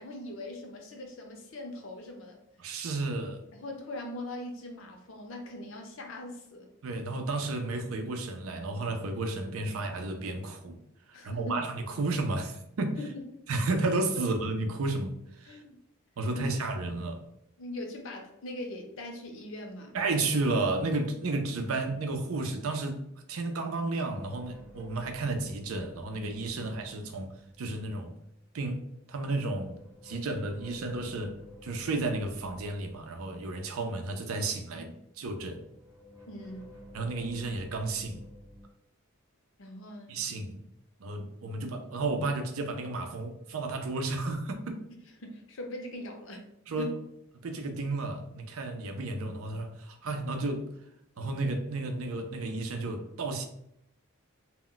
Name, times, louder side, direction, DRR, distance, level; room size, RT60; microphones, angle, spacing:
voice 1, 0.0-2.4 3.5-6.7 11.1-11.6 13.0-13.2 15.5-15.8 16.2-16.4 17.6-20.0 36.3-36.7 39.6-40.2 45.2-46.5 46.8-46.9, left 1 dB, 65° left, 2 dB, 0.6 m, -41 dB
voice 2, 2.6-3.4 6.8-10.8 11.1-13.0 13.5-15.6 16.2-17.2 19.9-23.0 23.3-28.1 28.5-28.8 29.1-29.8 30.0-35.6 36.9-38.2 40.1-40.6 41.0-44.8 46.7-46.9 47.4-50.7 51.2-53.5, right 2 dB, 80° right, 5 dB, 0.5 m, -32 dB
sound 1, 24.1-28.2 29.1-34.8 35.2-38.6, left 1 dB, 15° right, 0.5 m, -52 dB
2.1 x 2.1 x 3.7 m, 0.76 s
head